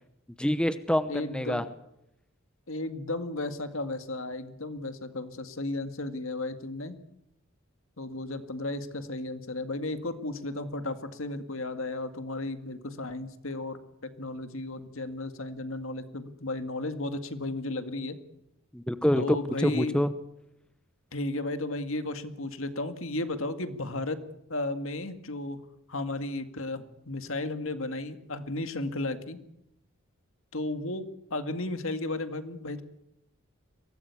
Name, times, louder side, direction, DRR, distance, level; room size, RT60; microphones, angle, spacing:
voice 1, 0.4-1.6 18.7-19.4 19.6-20.1, equal, 5° left, 12 dB, 0.8 m, -26 dB
voice 2, 1.1-1.6 2.7-7.0 8.0-18.2 19.1-20.0 21.1-24.2 24.5-25.6 25.9-29.4 30.5-31.1 31.3-32.8, left 2 dB, 65° left, 9 dB, 2.0 m, -34 dB
23.5 x 18.0 x 8.5 m, 0.82 s
head